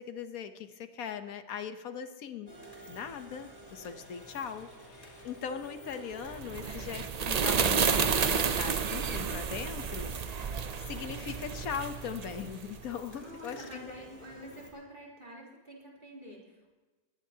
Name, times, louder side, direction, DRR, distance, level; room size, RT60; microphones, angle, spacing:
voice 1, 0.0-2.5 2.9-10.4 10.8-13.9, left 7 dB, 80° left, 9 dB, 1.3 m, -40 dB
sound 1, 2.5-14.7, right 1 dB, 35° left, 3.3 m, -51 dB
sound 2, 6.3-12.9, right 6 dB, 60° right, 0.4 m, -31 dB
voice 2, 6.5-7.0 13.2-16.7, equal, 35° right, -4 dB, 3.6 m, -48 dB
22.0 x 16.5 x 2.8 m, 1.2 s
omnidirectional pair, 1.5 m